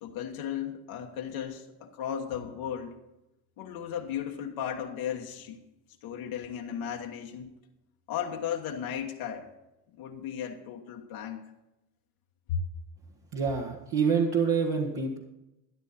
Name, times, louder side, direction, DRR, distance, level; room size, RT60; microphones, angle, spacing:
voice 1, 0.0-3.0 3.6-5.6 6.0-7.5 8.1-9.5 10.0-11.4 12.5-12.6, left 8 dB, 75° left, 1 dB, 1.3 m, -35 dB
voice 2, 13.3-15.2, right 5 dB, 55° right, -1 dB, 1.7 m, -26 dB
13.0 x 11.0 x 4.1 m, 0.93 s
hypercardioid pair, 60°, 49 cm